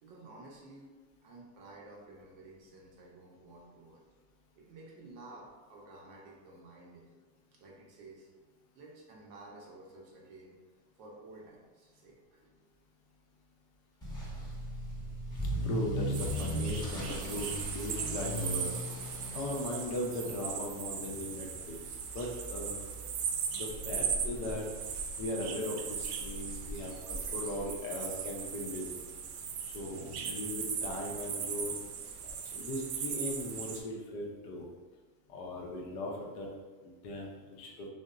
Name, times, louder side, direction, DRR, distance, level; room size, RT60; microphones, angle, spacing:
voice 1, 0.0-4.0 4.6-7.1 7.5-8.3 8.7-10.6 11.0-12.6 19.0-19.2, right 2 dB, 45° right, -2 dB, 0.6 m, -53 dB
Motor vehicle (road) / Accelerating revving vroom, 14.0-28.9 29.2-29.5 30.1-30.2 30.5-30.6 30.8-30.9 32.2-32.3, equal, 10° left, 0.8 m, -40 dB
voice 2, 15.4-18.7 19.3-22.8 23.5-24.7 25.2-28.9 29.6-31.7 32.5-34.7 35.3-36.5 36.8-37.9, left 1 dB, 50° left, -1 dB, 0.6 m, -38 dB
sound 1, 16.1-33.8, right 7 dB, 85° right, 0.5 m, -38 dB
2.8 x 2.1 x 2.4 m, 1.3 s
supercardioid pair, 130°, 47 cm